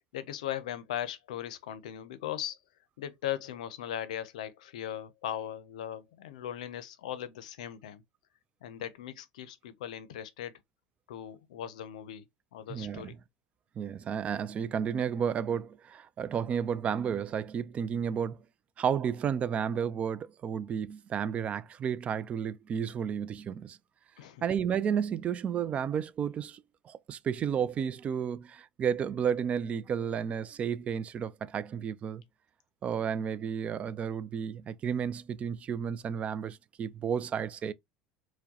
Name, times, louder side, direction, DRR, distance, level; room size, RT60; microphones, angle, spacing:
voice 1, 0.1-2.6 3.0-8.0 8.6-10.5 11.1-12.2 12.5-13.2 24.2-24.5, left 11 dB, 85° left, 0.5 m, -38 dB
voice 2, 12.7-13.2 13.8-18.4 18.8-23.8 24.4-32.2 32.8-37.7, right 7 dB, 35° right, 0.3 m, -32 dB
4.4 x 2.1 x 2.7 m
hypercardioid pair, 95°, 4 cm